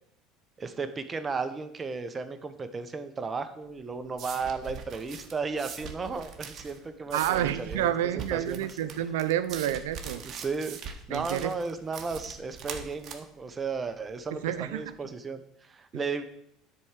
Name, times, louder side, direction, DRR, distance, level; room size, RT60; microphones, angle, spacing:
voice 1, 0.6-7.9 8.3-8.7 9.0-9.1 10.1-16.3, right 4 dB, 25° right, 9 dB, 0.9 m, -34 dB
sound 1, 3.6-15.0, right 6 dB, 50° right, 1.3 m, -43 dB
voice 2, 7.1-10.2 11.1-11.5 14.3-14.9, right 11 dB, 90° right, 13 dB, 0.6 m, -29 dB
9.8 x 4.7 x 7.3 m, 0.73 s
supercardioid pair, 100°, 0 cm